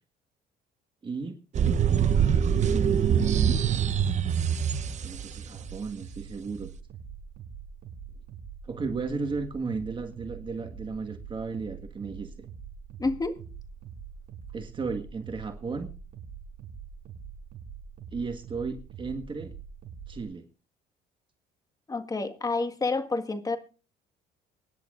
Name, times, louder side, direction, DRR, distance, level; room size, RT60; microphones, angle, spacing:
voice 1, 1.0-1.4 2.7-3.5 4.8-6.7 8.6-12.5 14.5-15.9 18.1-19.5 20.1-20.4, right 4 dB, 30° right, 1.7 m, -34 dB
sound 1, 1.5-5.5, right 8 dB, 45° right, 0.9 m, -24 dB
sound 2, 5.5-20.3, right 6 dB, 70° right, 5.7 m, -44 dB
voice 2, 13.0-13.4 21.9-23.6, left 3 dB, 20° left, 1.7 m, -29 dB
25.0 x 11.0 x 2.5 m
cardioid pair, 110°, 17 cm